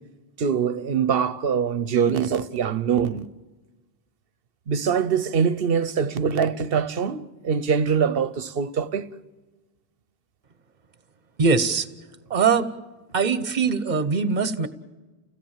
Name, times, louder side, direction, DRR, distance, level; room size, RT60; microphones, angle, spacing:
voice 1, 0.4-3.3 4.7-9.1, right 7 dB, 70° right, 1.1 m, -23 dB
voice 2, 11.4-11.9 12.3-12.7 13.1-14.7, right 5 dB, 45° right, 1.2 m, -21 dB
30.0 x 17.0 x 7.4 m
omnidirectional pair, 1.0 m